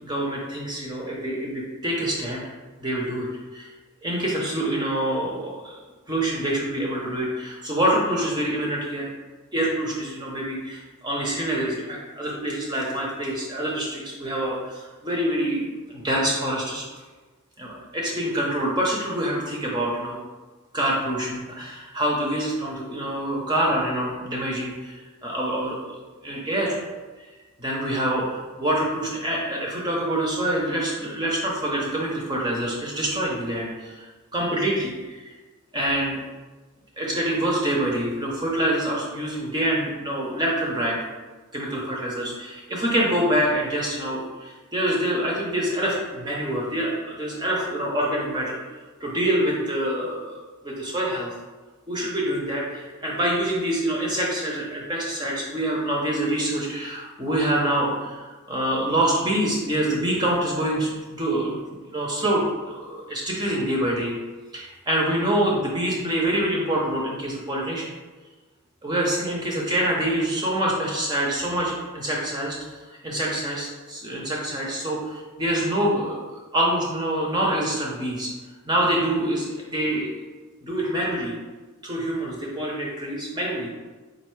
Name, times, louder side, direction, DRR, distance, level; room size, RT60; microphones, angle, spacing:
voice 1, 0.0-2.4 2.8-3.7 4.0-5.7 6.1-9.1 9.5-16.8 17.6-20.2 20.7-24.9 25.2-26.8 27.6-34.1 34.3-35.3 35.7-36.2 37.0-41.0 41.5-48.6 49.0-51.3 51.9-64.1 64.5-67.9 68.8-72.6 72.9-78.3 78.7-80.1 80.6-81.3 81.8-83.7, right 1 dB, 20° right, -3 dB, 0.6 m, -26 dB
4.3 x 2.6 x 4.5 m, 1.3 s
head